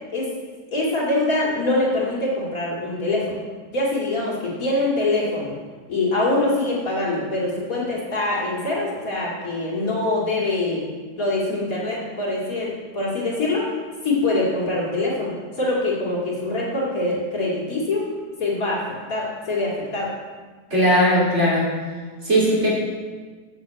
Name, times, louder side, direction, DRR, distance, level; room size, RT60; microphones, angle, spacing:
voice 1, 0.7-3.4 3.7-5.5 5.9-10.9 11.2-13.8 14.0-18.1 18.4-18.8 19.1-20.1, left 2 dB, 50° left, -5 dB, 2.7 m, -24 dB
voice 2, 20.7-21.7 22.2-22.7, equal, 40° right, -6 dB, 3.7 m, -18 dB
8.2 x 6.9 x 7.7 m, 1.5 s
omnidirectional pair, 1.9 m